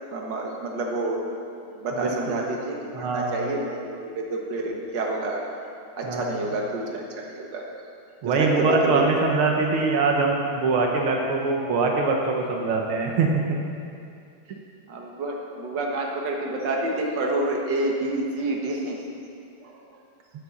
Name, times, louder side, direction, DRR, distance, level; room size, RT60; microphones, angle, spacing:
voice 1, 0.1-1.2 1.6-5.4 6.0-7.0 7.3-7.6 8.2-9.0 14.9-19.0 19.6-20.0, right 2 dB, 60° right, -1 dB, 2.0 m, -28 dB
voice 2, 2.0-2.4 2.9-3.4 6.0-6.4 8.2-13.6, right 3 dB, 85° right, 1 dB, 1.9 m, -23 dB
9.5 x 9.0 x 7.2 m, 2.5 s
omnidirectional pair, 2.3 m